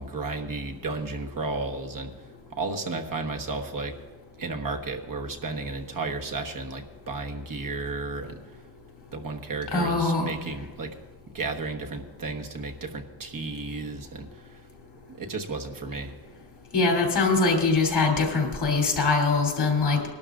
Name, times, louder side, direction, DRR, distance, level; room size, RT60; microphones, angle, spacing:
voice 1, 0.0-2.1 2.5-3.9 4.4-8.4 9.1-11.0 11.3-14.6 15.1-16.1, right 3 dB, 55° right, 2 dB, 1.3 m, -33 dB
voice 2, 9.7-10.3 16.7-20.1, left 3 dB, 80° left, 0 dB, 3.1 m, -23 dB
20.0 x 12.0 x 2.5 m, 1.4 s
cardioid pair, 85°, 40 cm